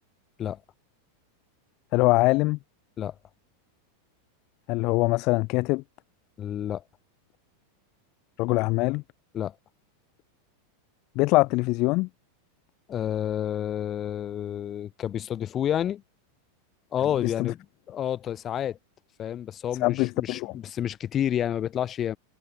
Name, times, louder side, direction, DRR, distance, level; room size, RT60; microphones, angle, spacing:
voice 1, 1.9-2.6 4.7-5.8 8.4-9.0 11.2-12.1 17.2-17.5 19.8-20.5, left 23 dB, 45° left, 0.7 m, -23 dB
voice 2, 6.4-6.8 9.3-9.5 12.9-16.0 16.9-18.8 19.2-22.2, left 10 dB, 25° left, 3.7 m, -29 dB
supercardioid pair, 145°, 0 cm